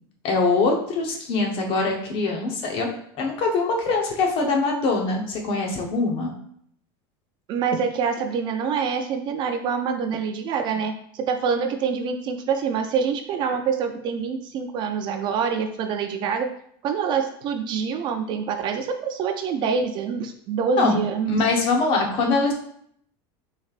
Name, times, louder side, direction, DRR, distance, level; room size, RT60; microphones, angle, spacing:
voice 1, 0.2-6.3 20.8-21.0 21.3-22.5, left 3 dB, 40° left, 1 dB, 0.9 m, -23 dB
voice 2, 7.5-16.5 16.8-21.4, right 6 dB, 35° right, 6 dB, 0.4 m, -26 dB
6.1 x 3.3 x 2.4 m, 0.67 s
supercardioid pair, 155°, 13 cm